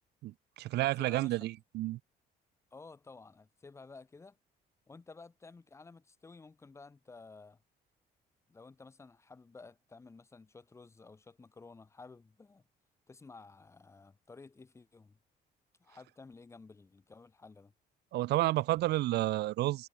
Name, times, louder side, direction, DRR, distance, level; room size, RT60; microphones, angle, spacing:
voice 1, 0.2-2.0 18.1-19.9, right 16 dB, 85° right, 0.8 m, -31 dB
voice 2, 1.0-1.5 2.7-4.4 4.9-7.6 8.5-12.6 13.1-15.2 15.8-17.7, left 4 dB, 15° left, 2.0 m, -53 dB
cardioid pair, 175°, 17 cm